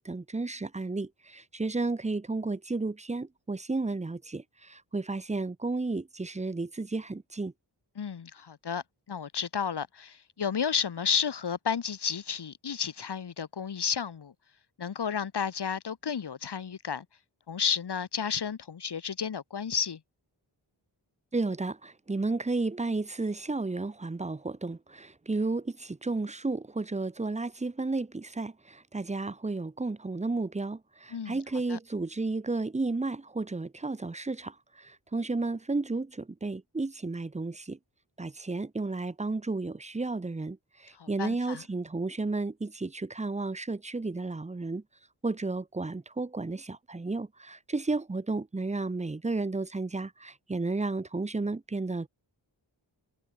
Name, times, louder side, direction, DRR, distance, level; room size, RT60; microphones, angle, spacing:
voice 1, 0.0-7.5 21.3-37.8 38.2-44.8 45.2-52.1, right 3 dB, 15° right, 0.5 m, -32 dB
voice 2, 8.0-14.3 14.8-17.0 17.5-20.0 31.1-31.4 31.7-31.8 41.0-41.6, left 7 dB, 60° left, 1.0 m, -32 dB
wide cardioid pair, 65°, 46 cm